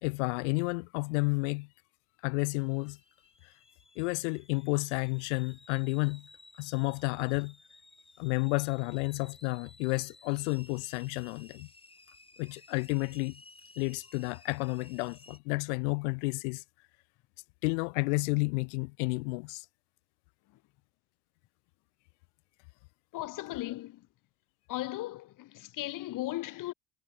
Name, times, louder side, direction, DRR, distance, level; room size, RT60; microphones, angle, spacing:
voice 1, 0.0-1.7 2.2-3.0 3.4-3.5 4.0-6.3 6.6-7.5 8.2-11.7 12.4-13.4 13.8-16.6 17.6-19.7, left 29 dB, 75° left, 1.2 m, -31 dB
sound 1, 2.6-15.4, left 2 dB, 15° left, 7.7 m, -57 dB
voice 2, 23.1-24.1 24.7-26.7, left 16 dB, 60° left, 2.0 m, -37 dB
hypercardioid pair, 60°, 36 cm